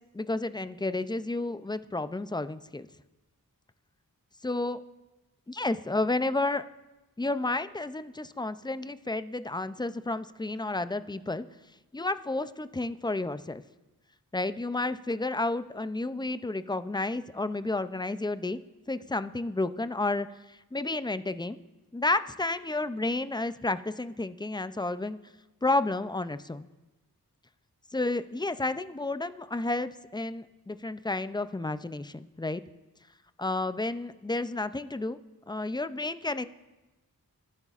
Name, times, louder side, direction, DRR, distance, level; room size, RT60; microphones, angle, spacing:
voice 1, 0.1-2.9 4.4-4.8 5.5-6.7 7.2-11.4 11.9-13.6 14.3-18.6 18.9-20.3 20.7-21.6 21.9-25.2 25.6-26.7 27.9-32.6 33.4-35.2 35.5-36.5, left 2 dB, 10° left, 13 dB, 0.4 m, -31 dB
19.5 x 9.7 x 2.4 m, 1.1 s
wide cardioid pair, 40°, 36 cm